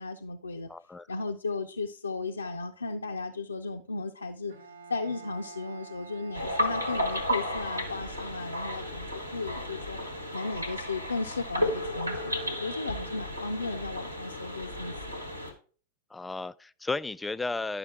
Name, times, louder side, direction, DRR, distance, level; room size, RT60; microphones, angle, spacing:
voice 1, 0.0-0.7 1.1-4.5 4.9-10.0 10.3-15.1, left 3 dB, 75° left, 0.5 m, -35 dB
voice 2, 0.7-1.1 16.1-17.8, left 3 dB, 10° left, 0.3 m, -34 dB
Bowed string instrument, 4.5-8.2, right 4 dB, 70° right, 0.8 m, -48 dB
sound 1, 6.3-15.5, left 1 dB, 85° right, 1.7 m, -33 dB
10.5 x 6.3 x 3.5 m
figure-of-eight pair, 90°, 0 cm